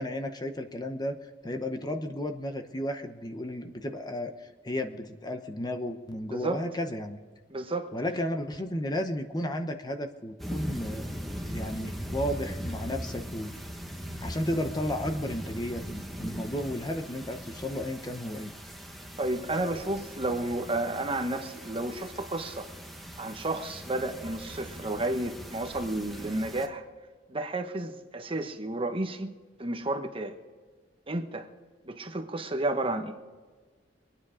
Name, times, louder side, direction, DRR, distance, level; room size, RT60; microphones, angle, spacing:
voice 1, 0.0-7.2 7.9-11.1 11.5-13.5 14.2-18.5, left 1 dB, 20° left, 6 dB, 0.9 m, -33 dB
voice 2, 6.3-6.6 7.5-7.9 19.2-22.7 23.2-26.8 27.3-29.3 29.6-30.4 31.1-31.5 31.9-33.1, right 2 dB, 30° right, 5 dB, 1.1 m, -31 dB
sound 1, 10.4-26.7, equal, ahead, 1.3 m, -40 dB
23.5 x 9.8 x 5.0 m, 1.4 s
head